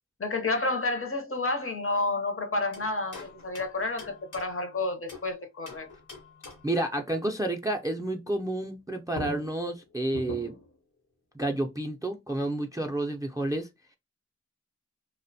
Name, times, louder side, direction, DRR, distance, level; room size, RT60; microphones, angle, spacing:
voice 1, 0.2-5.9, left 2 dB, 45° left, 0.6 m, -30 dB
sound 1, 2.7-5.3 5.7-6.8 8.8-8.9 9.1-10.8, left 1 dB, 75° left, 0.9 m, -43 dB
voice 2, 6.6-10.5 11.3-13.7, right 1 dB, 10° right, 0.3 m, -30 dB
2.4 x 2.1 x 2.6 m
wide cardioid pair, 50°, 30 cm